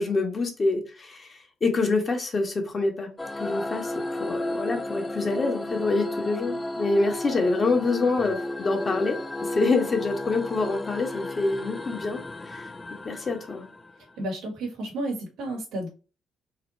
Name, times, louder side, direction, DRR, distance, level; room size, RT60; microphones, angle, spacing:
voice 1, 0.0-3.1 3.4-12.7 13.0-13.6, left 3 dB, 40° left, 2 dB, 1.4 m, -26 dB
sound 1, 3.2-14.1, left 2 dB, 20° left, 0.5 m, -33 dB
voice 2, 14.2-15.9, right 1 dB, 85° right, -1 dB, 1.8 m, -32 dB
4.1 x 2.7 x 4.2 m, 0.32 s
supercardioid pair, 70°, 0 cm